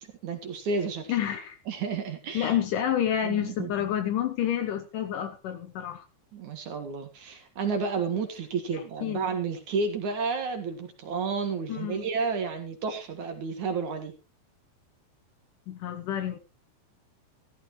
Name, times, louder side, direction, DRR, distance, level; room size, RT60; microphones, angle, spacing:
voice 1, 0.2-1.1 1.7-2.5 3.2-3.7 6.3-14.1, right 5 dB, 55° right, 6 dB, 2.7 m, -31 dB
voice 2, 1.1-1.6 2.3-6.1 8.7-9.3 11.7-12.1 15.7-16.4, left 10 dB, 70° left, 9 dB, 2.2 m, -29 dB
14.0 x 14.0 x 3.1 m, 0.28 s
omnidirectional pair, 4.5 m